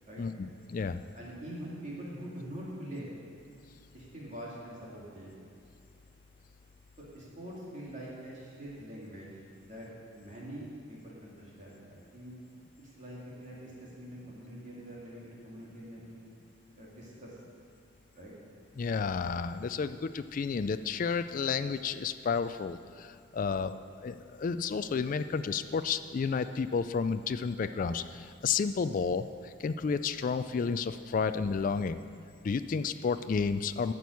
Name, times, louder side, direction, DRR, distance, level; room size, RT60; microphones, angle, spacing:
voice 1, 0.2-1.0 18.8-32.0 32.4-33.9, left 5 dB, 40° left, 11 dB, 0.3 m, -31 dB
voice 2, 1.1-3.1 3.9-5.4 7.1-9.3 9.6-12.4 12.8-16.3 16.7-17.3 18.1-18.3, right 1 dB, 35° right, -6 dB, 2.6 m, -44 dB
11.5 x 6.1 x 8.3 m, 2.4 s
head